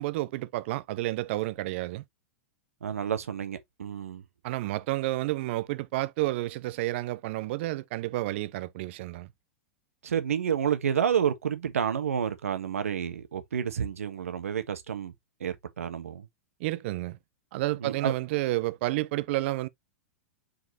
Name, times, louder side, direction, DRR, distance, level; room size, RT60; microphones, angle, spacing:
voice 1, 0.0-2.0 4.4-9.3 16.6-17.2 17.5-19.7, right 18 dB, 55° right, 0.8 m, -30 dB
voice 2, 2.8-4.2 10.0-15.1 15.4-16.3 17.8-18.1, right 8 dB, 80° right, 1.6 m, -29 dB
5.9 x 5.4 x 3.0 m
hypercardioid pair, 110°, 8 cm